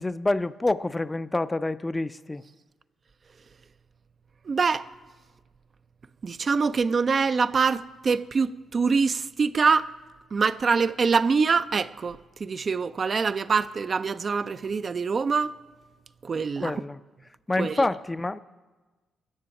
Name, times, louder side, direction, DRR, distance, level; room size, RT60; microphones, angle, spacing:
voice 1, 0.0-2.4 16.6-17.0 17.5-18.4, left 2 dB, 20° left, 0.4 m, -27 dB
voice 2, 4.5-4.9 6.2-9.9 10.3-15.5 16.2-16.8 17.6-17.9, right 5 dB, 45° right, 0.4 m, -24 dB
14.0 x 6.9 x 8.6 m
supercardioid pair, 60°, 0 cm